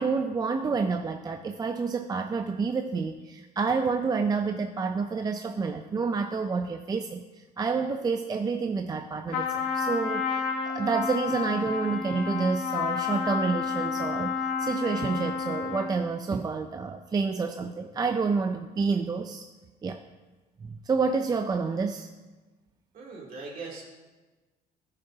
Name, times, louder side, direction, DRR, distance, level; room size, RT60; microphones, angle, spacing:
voice 1, 0.0-10.4 10.7-14.3 14.6-19.4 19.8-20.0 20.6-22.1, right 4 dB, 25° right, 6 dB, 0.5 m, -29 dB
Trumpet, 9.3-16.0, left 5 dB, 85° left, 1.6 m, -30 dB
voice 2, 22.9-23.8, right 3 dB, 55° right, -3 dB, 2.8 m, -40 dB
14.0 x 6.7 x 2.8 m, 1.2 s
cardioid pair, 110°, 17 cm